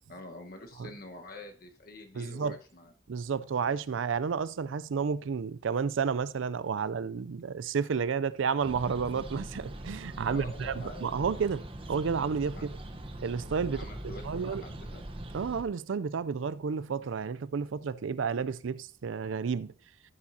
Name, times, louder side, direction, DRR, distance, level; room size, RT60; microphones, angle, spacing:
voice 1, 0.1-2.9 10.2-11.1 12.6-12.7 13.7-15.0, left 2 dB, 50° left, 1.3 m, -46 dB
voice 2, 2.2-2.6 3.1-11.6 11.9-12.7 13.2-14.6 15.3-19.7, right 6 dB, 85° right, 0.4 m, -31 dB
sound 1, 8.6-15.6, right 1 dB, 30° right, 0.9 m, -41 dB
15.0 x 7.3 x 2.7 m
head